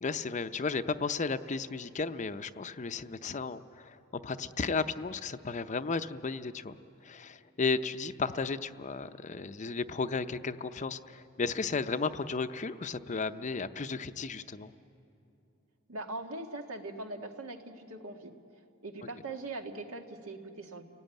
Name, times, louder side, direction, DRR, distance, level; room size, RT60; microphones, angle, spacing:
voice 1, 0.0-6.8 7.0-14.7, left 4 dB, 35° left, 11 dB, 0.6 m, -34 dB
voice 2, 15.9-18.3 18.8-20.8, right 2 dB, 85° right, 4 dB, 1.8 m, -41 dB
29.5 x 18.0 x 9.0 m, 2.8 s
head